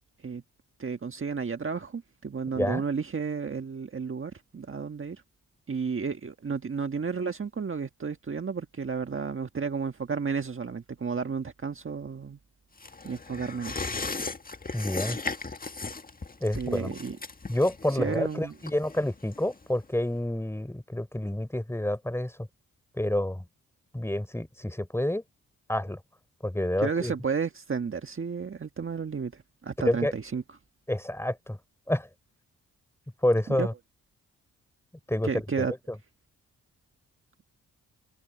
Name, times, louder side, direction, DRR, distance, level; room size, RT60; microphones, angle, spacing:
voice 1, 0.8-5.2 5.7-12.4 13.0-13.9 16.5-17.2 17.9-18.5 26.8-30.4 33.6-33.7 35.2-35.7, right 5 dB, 35° right, 1.6 m, -32 dB
sound 1, 12.8-19.8 20.2-20.3, left 3 dB, 25° left, 1.7 m, -37 dB
voice 2, 14.7-15.2 16.4-16.9 17.5-22.5 23.0-23.4 23.9-25.2 25.7-26.0 26.4-27.1 29.8-30.1 30.9-31.6 31.9-32.1 33.2-33.7 35.1-36.0, left 1 dB, 5° left, 3.9 m, -28 dB
cardioid pair, 60°, 34 cm